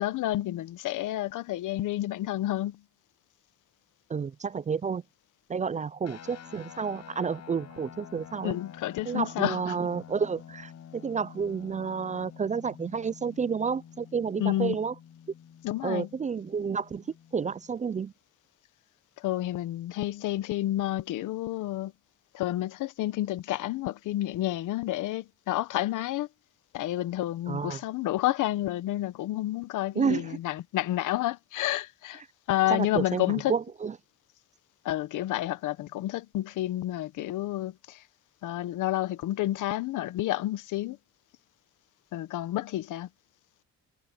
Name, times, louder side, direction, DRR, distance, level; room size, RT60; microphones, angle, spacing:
voice 1, 0.0-2.8 8.4-9.6 14.4-14.8 15.6-16.1 19.2-21.9 22.3-26.3 26.7-32.2 32.5-33.5 34.8-38.0 38.4-41.0 42.1-43.1, left 14 dB, 85° left, 1.2 m, -30 dB
voice 2, 4.1-5.0 5.5-8.6 9.1-14.9 15.8-17.0 17.3-18.1 27.5-27.8 30.0-30.4 32.7-33.9, right 6 dB, 25° right, 0.4 m, -30 dB
sound 1, 6.0-17.8, left 8 dB, 60° left, 7.4 m, -49 dB
cardioid pair, 90°, 30 cm